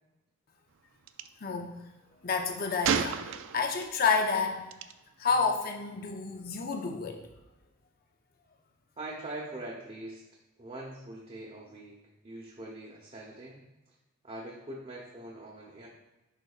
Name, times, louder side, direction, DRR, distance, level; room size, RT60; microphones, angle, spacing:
Gunshot gunfire, 1.1-1.3 2.8-3.9 4.7-4.9, right 7 dB, 60° right, 0.3 m, -30 dB
voice 1, 1.4-1.8 2.2-4.8 5.2-7.2, left 5 dB, 40° left, 4 dB, 0.5 m, -30 dB
voice 2, 9.0-10.2 10.6-12.0 12.2-13.6 14.2-15.9, right 2 dB, 25° right, -3 dB, 0.8 m, -42 dB
10.5 x 3.9 x 2.4 m, 1.0 s
head